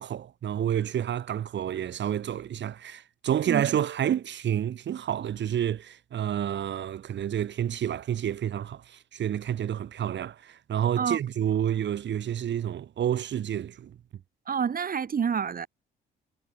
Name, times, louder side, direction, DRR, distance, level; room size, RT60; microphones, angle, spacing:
voice 1, 0.0-14.0, right 10 dB, 65° right, 3.8 m, -29 dB
voice 2, 14.5-15.7, right 7 dB, 45° right, 3.8 m, -28 dB
cardioid pair, 90°, 20 cm